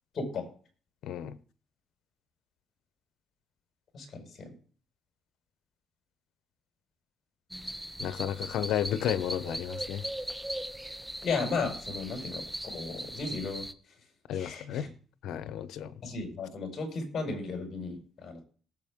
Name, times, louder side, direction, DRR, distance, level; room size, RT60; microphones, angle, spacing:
voice 1, 0.1-0.5 3.9-4.5 11.2-12.4 12.7-13.7 14.3-14.9 16.0-18.4, left 4 dB, 50° left, 4 dB, 5.4 m, -35 dB
voice 2, 1.0-1.4 8.0-10.0 14.3-14.9 15.2-15.9, left 10 dB, 80° left, 15 dB, 0.8 m, -32 dB
sound 1, 7.5-13.7, equal, 5° right, 0.7 m, -39 dB
18.5 x 7.6 x 3.6 m, 0.42 s
cardioid pair, 90°, 0 cm